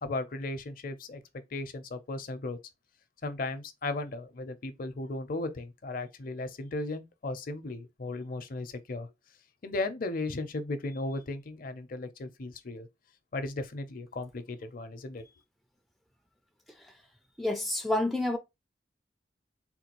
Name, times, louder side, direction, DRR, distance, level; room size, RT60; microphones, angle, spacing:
voice 1, 0.0-1.2 1.5-2.6 3.2-9.1 9.6-12.9 13.3-15.2, left 2 dB, 50° left, 0.5 m, -36 dB
voice 2, 17.4-18.4, left 1 dB, ahead, 0.3 m, -28 dB
3.7 x 2.3 x 2.9 m
head